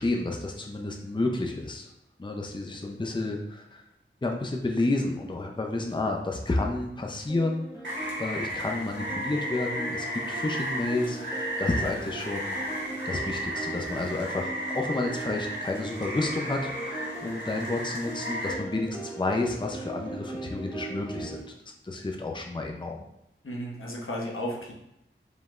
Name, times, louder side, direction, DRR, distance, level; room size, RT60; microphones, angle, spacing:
voice 1, 0.0-1.9 2.2-3.8 4.2-7.7 8.2-12.6 13.1-21.4 21.8-23.0, left 2 dB, 20° left, 2 dB, 0.5 m, -30 dB
sound 1, 7.3-21.4, right 2 dB, 15° right, 1.1 m, -39 dB
Rain, 7.8-18.5, equal, 65° right, 1.3 m, -34 dB
voice 2, 23.4-24.7, equal, 75° left, -2 dB, 0.9 m, -34 dB
5.1 x 3.2 x 2.4 m, 0.81 s
wide cardioid pair, 45°, 21 cm